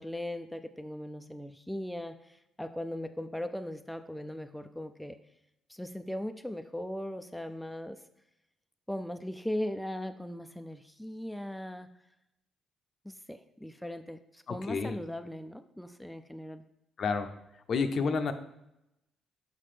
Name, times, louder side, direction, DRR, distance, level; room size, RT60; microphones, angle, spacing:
voice 1, 0.0-5.2 5.7-8.0 8.9-11.9 13.0-16.6, left 1 dB, 5° left, 8 dB, 0.3 m, -39 dB
voice 2, 14.5-15.0 17.0-17.3 17.7-18.3, left 4 dB, 55° left, 8 dB, 0.5 m, -29 dB
5.8 x 5.2 x 3.3 m, 0.85 s
cardioid pair, 90°, 0 cm